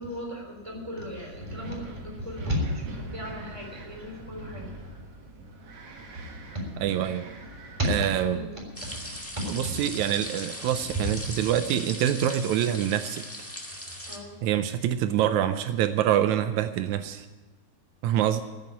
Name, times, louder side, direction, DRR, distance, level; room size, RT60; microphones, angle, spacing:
voice 1, 0.0-4.7 6.1-6.9 7.7-9.7 10.6-10.8 11.0-11.1 14.0-14.4, equal, 10° right, -1 dB, 3.4 m, -34 dB
Wind, 1.1-9.2, right 1 dB, 60° right, 2.6 m, -44 dB
voice 2, 6.8-7.2 7.9-8.4 9.5-13.5 14.4-17.3 18.0-18.4, right 11 dB, 85° right, 10 dB, 2.0 m, -26 dB
sound 1, 8.7-14.2, left 1 dB, 20° left, 0.3 m, -39 dB
15.0 x 7.2 x 9.5 m, 1.2 s
omnidirectional pair, 3.3 m